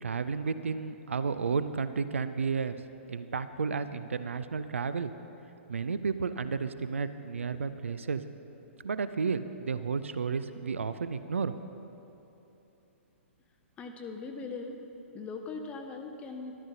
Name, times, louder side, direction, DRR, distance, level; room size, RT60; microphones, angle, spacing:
voice 1, 0.0-2.8 3.1-5.1 5.7-8.2 8.8-11.5, right 5 dB, 70° right, 12 dB, 0.4 m, -32 dB
voice 2, 13.8-14.8 15.1-16.5, left 4 dB, 15° left, 4 dB, 0.5 m, -40 dB
13.5 x 12.0 x 2.7 m, 2.9 s
figure-of-eight pair, 115°, 7 cm